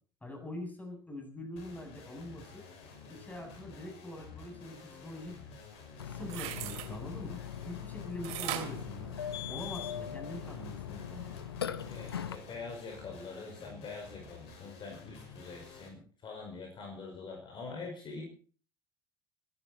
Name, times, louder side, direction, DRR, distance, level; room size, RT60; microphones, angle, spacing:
voice 1, 0.2-2.7 3.1-5.4 6.0-9.1 9.5-11.4, left 1 dB, 15° left, 3 dB, 7.8 m, -44 dB
sound 1, 1.6-15.9, left 4 dB, 60° left, 5.7 m, -51 dB
Burping eructation, 6.0-12.4, left 9 dB, 80° left, 1.0 m, -40 dB
sound 2, 6.2-6.9 8.2-9.8 10.3-10.4, right 13 dB, 60° right, 2.7 m, -39 dB
voice 2, 11.9-18.2, left 4 dB, 40° left, 2 dB, 5.2 m, -44 dB
26.5 x 11.0 x 4.3 m, 0.41 s
figure-of-eight pair, 65°, 12 cm